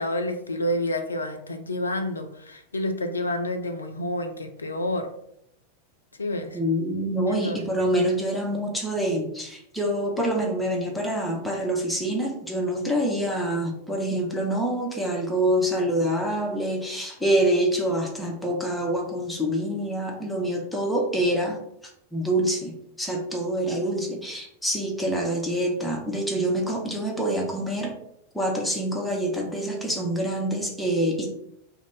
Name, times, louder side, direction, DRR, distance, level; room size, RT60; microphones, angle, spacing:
voice 1, 0.0-5.1 6.2-6.6 7.3-7.9, left 1 dB, 75° left, 5 dB, 0.3 m, -29 dB
voice 2, 6.5-21.6 22.1-27.9 28.3-31.3, right 1 dB, 5° left, 0 dB, 0.6 m, -26 dB
2.4 x 2.0 x 3.6 m, 0.74 s
figure-of-eight pair, 90°, 0 cm